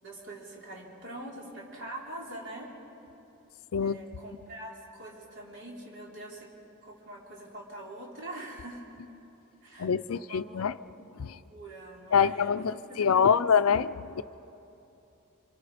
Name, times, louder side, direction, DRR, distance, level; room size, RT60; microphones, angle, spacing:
voice 1, 0.0-2.7 3.8-6.5 6.8-9.0 9.6-10.7 11.4-13.8, right 1 dB, 55° right, -3 dB, 4.0 m, -44 dB
voice 2, 9.8-10.7 11.2-11.4 12.1-14.2, left 6 dB, 75° left, 14 dB, 0.5 m, -25 dB
26.0 x 25.5 x 5.0 m, 2.9 s
head